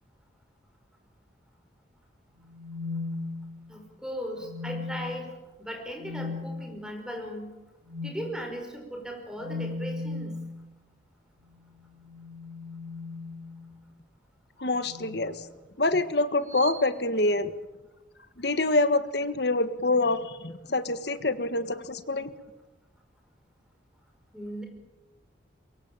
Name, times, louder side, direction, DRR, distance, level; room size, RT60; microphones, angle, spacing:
sound 1, 2.5-3.8 4.4-5.2 6.0-6.5 7.9-8.2 9.4-10.4 11.9-13.8 14.8-15.3 16.5-16.8, left 3 dB, 45° right, 2.6 m, -37 dB
voice 1, 3.7-7.5 8.0-10.4 24.3-24.6, equal, 5° right, 2 dB, 5.3 m, -37 dB
voice 2, 14.6-15.4 15.8-17.5 18.4-22.3, left 2 dB, 55° left, 11 dB, 1.5 m, -26 dB
23.5 x 22.5 x 8.9 m, 1.1 s
head